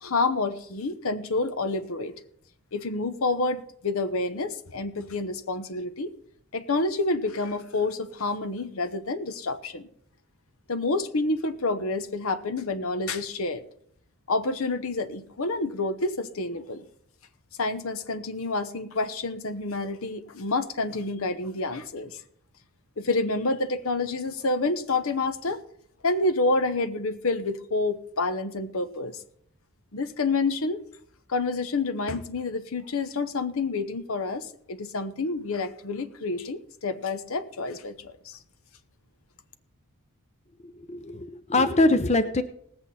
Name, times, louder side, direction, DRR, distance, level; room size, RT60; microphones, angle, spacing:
voice 1, 0.0-2.1 2.7-6.1 6.5-9.9 10.7-13.6 14.3-16.9 17.6-22.2 23.0-25.6 26.0-29.2 29.9-30.8 31.3-38.4, left 3 dB, 65° left, 11 dB, 0.9 m, -28 dB
voice 2, 40.9-42.4, left 2 dB, 30° left, 9 dB, 0.7 m, -23 dB
19.0 x 8.1 x 4.2 m, 0.68 s
head